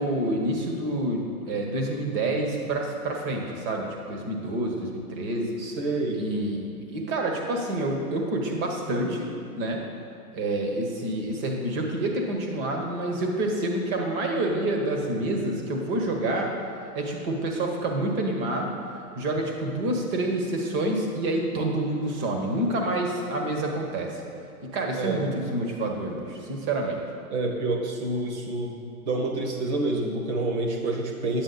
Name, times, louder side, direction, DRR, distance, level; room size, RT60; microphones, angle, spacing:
voice 1, 0.0-5.5 6.2-9.8 10.3-16.5 16.9-24.2 24.6-27.0, right 1 dB, 25° right, 2 dB, 1.3 m, -28 dB
voice 2, 5.6-6.2 25.0-25.2 27.3-31.4, right 2 dB, 45° right, 2 dB, 1.6 m, -28 dB
9.5 x 8.3 x 4.1 m, 2.4 s
hypercardioid pair, 130°, 47 cm